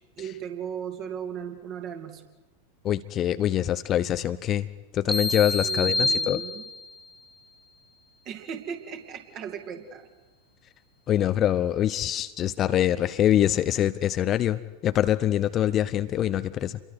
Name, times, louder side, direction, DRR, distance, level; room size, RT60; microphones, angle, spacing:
voice 1, 0.2-2.2 5.6-6.6 8.2-10.1, right 8 dB, 35° right, 5 dB, 2.7 m, -37 dB
voice 2, 2.8-4.7 4.9-6.4 11.1-16.8, left 11 dB, 30° left, 13 dB, 0.7 m, -24 dB
sound 1, 5.1-7.0, left 2 dB, ahead, 0.9 m, -27 dB
28.5 x 22.5 x 4.8 m, 1.2 s
figure-of-eight pair, 90°, 0 cm